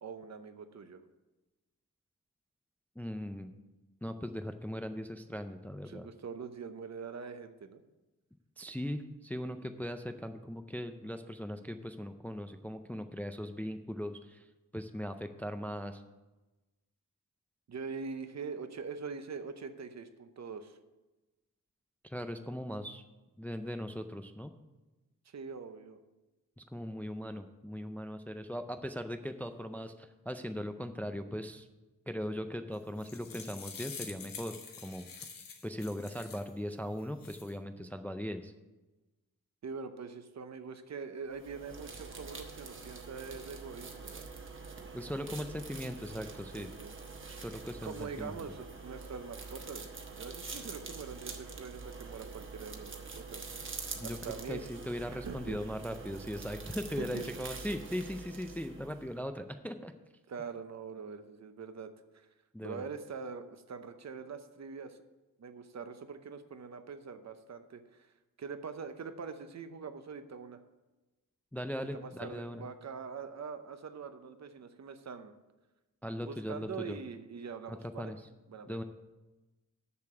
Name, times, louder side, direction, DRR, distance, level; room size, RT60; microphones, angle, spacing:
voice 1, 0.0-1.0 5.9-7.8 17.7-20.8 25.3-26.0 39.6-44.3 46.5-46.9 47.2-47.4 47.8-49.9 50.2-53.5 54.0-54.6 55.1-55.6 57.0-57.3 60.3-62.3 62.6-65.0 65.4-68.1 68.4-70.6 71.8-75.3 76.2-78.1 78.5-78.8, right 5 dB, 55° right, 9 dB, 0.7 m, -43 dB
voice 2, 3.0-3.5 4.0-6.1 8.6-14.5 14.7-16.0 22.0-23.0 23.4-24.5 26.6-31.7 32.1-35.1 35.6-38.5 44.9-46.7 47.3-48.4 53.9-59.9 62.5-62.8 71.5-72.6 76.0-77.0 77.7-78.2 78.7-78.8, equal, 5° left, 8 dB, 0.4 m, -39 dB
sound 1, 32.7-36.5 37.0-37.5, left 5 dB, 80° left, 1.3 m, -47 dB
sound 2, 41.3-59.1, right 4 dB, 35° right, 1.2 m, -45 dB
6.9 x 6.6 x 7.7 m, 1.1 s
wide cardioid pair, 140°, 33 cm